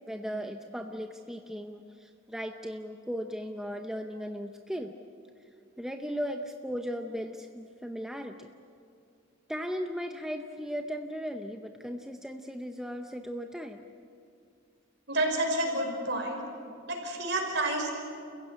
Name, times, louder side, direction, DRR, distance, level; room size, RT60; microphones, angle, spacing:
voice 1, 0.1-4.9 5.8-8.5 9.5-13.8, equal, 5° right, 4 dB, 0.7 m, -37 dB
voice 2, 15.1-16.4 16.9-17.9, right 1 dB, 55° right, 2 dB, 5.4 m, -29 dB
30.0 x 16.0 x 9.8 m, 2.6 s
head